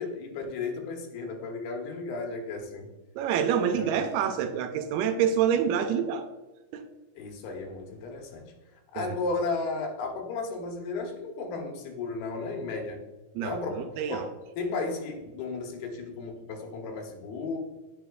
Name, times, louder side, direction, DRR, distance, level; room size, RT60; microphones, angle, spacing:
voice 1, 0.0-2.9 3.7-3.9 7.2-8.5 8.9-13.0 13.4-17.6, left 3 dB, 80° left, 3 dB, 2.8 m, -34 dB
voice 2, 3.2-6.3 6.7-6.8 9.0-9.2 13.4-14.3, right 8 dB, 80° right, 7 dB, 2.4 m, -27 dB
9.2 x 5.7 x 2.3 m, 1.1 s
omnidirectional pair, 4.5 m